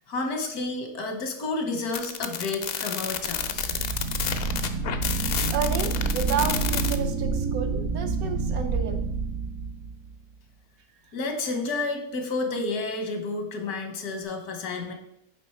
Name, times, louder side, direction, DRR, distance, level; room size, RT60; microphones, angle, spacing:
voice 1, 0.1-3.7 11.1-14.9, left 3 dB, 85° left, 5 dB, 1.5 m, -30 dB
sound 1, 1.9-7.0, left 8 dB, 70° left, 0.5 m, -30 dB
sound 2, 3.1-10.2, right 4 dB, 60° right, 0.8 m, -28 dB
voice 2, 5.5-9.0, right 6 dB, 75° right, 6 dB, 1.3 m, -31 dB
9.1 x 3.4 x 4.3 m, 0.79 s
omnidirectional pair, 1.6 m